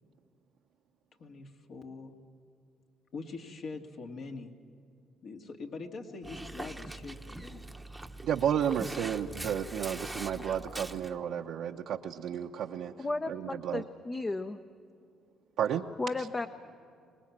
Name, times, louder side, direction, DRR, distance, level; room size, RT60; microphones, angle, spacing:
voice 1, 1.2-2.1 3.1-4.5 5.2-7.8 13.0-13.1, left 4 dB, 60° left, 3 dB, 2.4 m, -43 dB
Dog, 6.2-11.1, right 2 dB, 5° right, 1.0 m, -42 dB
voice 2, 8.2-12.9 13.3-13.8 15.6-15.8, right 9 dB, 70° right, 0 dB, 0.9 m, -32 dB
voice 3, 13.0-14.6 16.0-16.5, left 2 dB, 25° left, 8 dB, 0.8 m, -34 dB
25.0 x 20.0 x 7.5 m, 2.5 s
cardioid pair, 90°, 0 cm